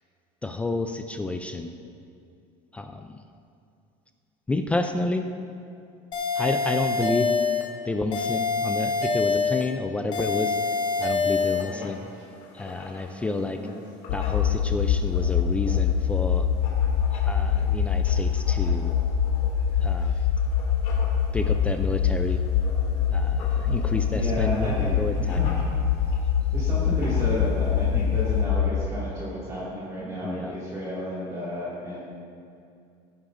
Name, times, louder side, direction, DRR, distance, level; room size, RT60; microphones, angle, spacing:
voice 1, 0.4-1.7 2.7-3.2 4.5-5.3 6.3-7.4 7.8-10.6 11.0-12.0 12.5-13.6 14.1-16.5 17.1-18.9 19.8-20.1 21.3-22.4 23.1-25.4 27.9-28.2 30.2-30.6, left 2 dB, 10° left, 6 dB, 0.3 m, -30 dB
sound 1, 6.1-7.7 8.1-9.7 10.1-11.7, left 4 dB, 30° left, 1.2 m, -25 dB
Writing, 10.8-28.4, left 3 dB, 60° left, 2.4 m, -45 dB
sound 2, 14.1-28.9, left 7 dB, 85° left, 0.5 m, -24 dB
voice 2, 24.1-25.5 26.5-32.1, equal, 20° right, -9 dB, 2.3 m, -32 dB
16.0 x 9.7 x 2.6 m, 2.4 s
cardioid pair, 170°, 14 cm